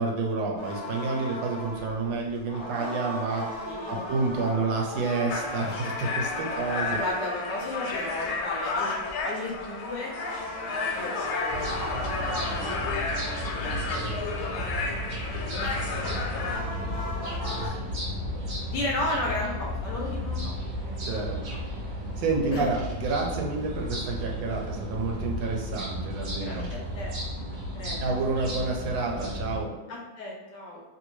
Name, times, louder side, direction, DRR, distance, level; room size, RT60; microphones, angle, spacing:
voice 1, 0.0-7.0 14.0-14.2 17.6-17.8 21.0-21.4 22.2-26.7 28.0-29.8, right 3 dB, 85° right, 0 dB, 1.4 m, -29 dB
sound 1, 0.6-17.7, left 1 dB, 45° left, 0.6 m, -38 dB
voice 2, 3.6-4.1 6.9-10.1 10.9-14.6 15.4-16.9 17.5-17.8 18.7-20.5 20.9-21.2 21.5-21.6 22.5-22.7 26.4-27.1 27.8-28.0 29.9-30.8, left 2 dB, 70° left, -2 dB, 1.1 m, -35 dB
sound 2, 5.3-16.6, left 3 dB, 90° left, 1.5 m, -32 dB
sound 3, 11.5-29.6, equal, 60° right, 1.1 m, -34 dB
3.2 x 2.6 x 3.0 m, 1.2 s
omnidirectional pair, 2.2 m